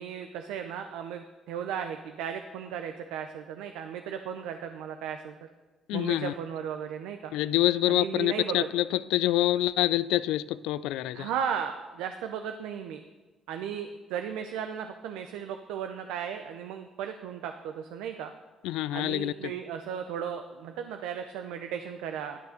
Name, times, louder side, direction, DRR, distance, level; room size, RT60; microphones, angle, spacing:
voice 1, 0.0-5.5 5.9-7.3 7.9-8.7 11.1-13.0 13.5-18.3 18.9-22.4, right 8 dB, 90° right, 0.6 m, -35 dB
voice 2, 5.9-6.3 7.3-11.3 18.6-19.5, left 15 dB, 85° left, 0.3 m, -26 dB
11.0 x 6.9 x 6.5 m
cardioid pair, 90°, 0 cm